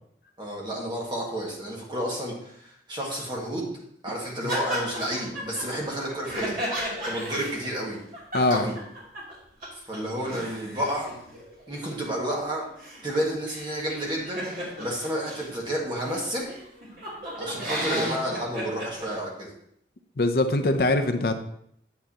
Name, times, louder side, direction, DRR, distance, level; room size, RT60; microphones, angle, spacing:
voice 1, 0.4-3.7 4.0-6.6 7.1-8.0 8.5-8.7 9.7-11.1 11.7-12.7 13.0-16.5 17.4-19.5, equal, 25° right, -3 dB, 1.8 m, -31 dB
sound 1, 4.5-9.3 9.6-9.7 9.9-15.6 16.1-16.2 16.5-19.1, equal, 50° right, 2.9 m, -34 dB
voice 2, 8.3-8.7 20.2-21.4, left 2 dB, 60° left, 7 dB, 0.5 m, -22 dB
8.8 x 7.6 x 2.9 m, 0.72 s
head